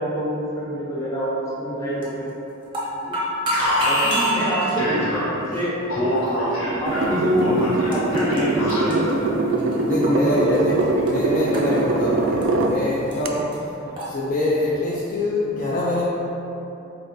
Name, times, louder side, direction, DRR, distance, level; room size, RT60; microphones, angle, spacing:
voice 1, 0.0-2.3 3.0-3.2 3.8-5.7 6.8-7.5 7.9-11.8 13.8-14.1, equal, 15° left, -8 dB, 0.8 m, -26 dB
sound 1, 2.0-2.3 2.6-4.8 5.5-5.7 6.4-6.5 7.4-7.5 7.7-8.4 8.7-10.3 10.5-11.1 11.5-12.7 13.1-13.2 13.5-13.6 13.9-14.1, right 1 dB, 25° right, 0.6 m, -28 dB
Alarm, 3.5-5.5 5.9-9.1, equal, 70° left, 1.2 m, -25 dB
sound 2, 6.8-12.8 13.2-13.3, right 2 dB, 60° right, 0.3 m, -23 dB
voice 2, 9.8-10.8 11.1-13.6 14.1-16.1, left 1 dB, 40° left, -7 dB, 0.4 m, -24 dB
3.9 x 3.3 x 2.8 m, 2.9 s
head